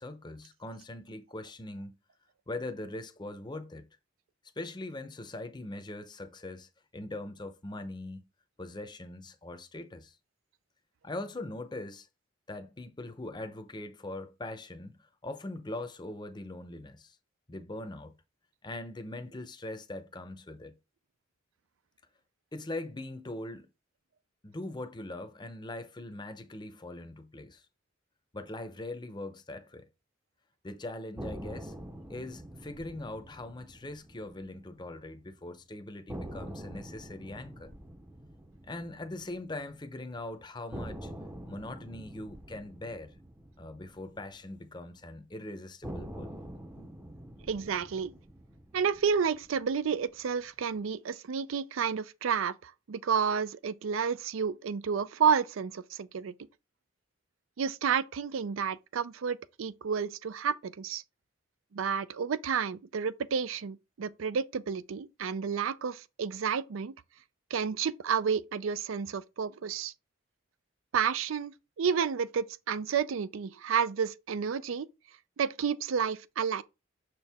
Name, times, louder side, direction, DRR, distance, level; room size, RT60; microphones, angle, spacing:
voice 1, 0.0-1.9 2.5-3.8 4.6-8.3 8.6-10.2 11.0-12.1 12.5-15.0 15.2-17.2 17.5-18.1 18.6-20.8 22.5-23.7 24.4-27.6 28.3-29.9 30.6-31.7 32.1-37.7 38.7-41.1 41.5-43.1 43.6-46.4 46.8-46.9, left 2 dB, 20° left, 0.6 m, -41 dB
sound 1, 31.2-35.3 35.5-35.6 36.1-40.2 40.7-45.1 45.8-50.2, right 1 dB, 10° right, 0.6 m, -46 dB
voice 2, 47.5-48.1 48.7-56.3 57.6-61.0 61.7-66.9 67.5-69.9 70.9-74.9 75.4-76.6, right 6 dB, 80° right, 0.4 m, -30 dB
6.5 x 4.5 x 3.4 m
head